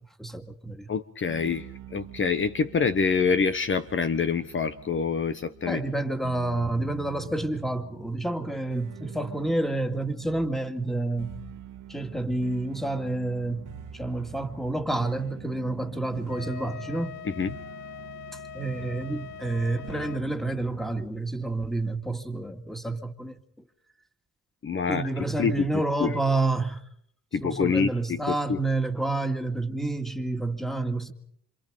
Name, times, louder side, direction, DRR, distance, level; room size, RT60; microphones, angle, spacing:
voice 1, 0.2-0.9 5.7-11.3 11.9-13.7 13.9-17.2 18.5-23.3 24.9-26.8 27.4-31.1, right 2 dB, ahead, 2.4 m, -29 dB
voice 2, 0.9-5.8 17.4-17.5 24.6-25.1 25.4-25.7 26.0-26.2 27.3-28.6, left 5 dB, 40° left, 1.1 m, -26 dB
sound 1, 1.3-21.1, right 9 dB, 80° right, 1.7 m, -46 dB
Wind instrument woodwind instrument, 16.3-20.2, left 10 dB, 85° left, 1.2 m, -42 dB
27.0 x 26.5 x 5.1 m
cardioid pair, 90°, 30 cm